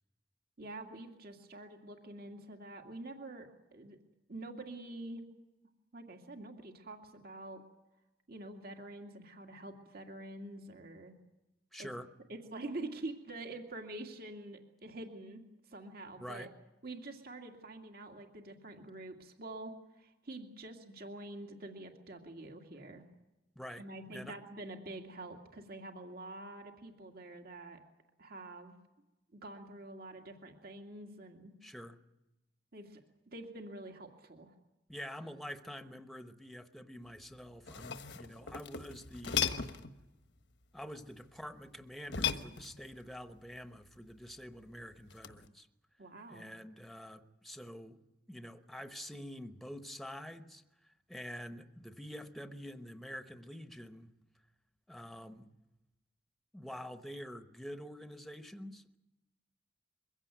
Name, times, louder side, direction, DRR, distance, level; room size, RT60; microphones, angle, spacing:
voice 1, 0.6-4.0 4.3-5.2 5.9-7.6 8.3-11.1 11.8-11.9 12.3-16.5 16.8-23.0 23.8-27.8 28.2-28.7 29.3-31.5 32.7-33.0 33.3-34.5 46.0-46.5, right 2 dB, 60° right, 4 dB, 2.3 m, -46 dB
voice 2, 11.7-12.1 16.2-16.5 23.5-24.4 31.6-32.0 34.9-39.5 40.7-45.7 46.3-48.0 48.3-54.1 54.9-55.5 56.5-59.0, equal, ahead, 8 dB, 1.0 m, -47 dB
sound 1, 37.5-40.0 42.1-43.0 45.1-45.5, left 7 dB, 70° left, 1.3 m, -36 dB
23.0 x 16.0 x 9.2 m, 0.97 s
head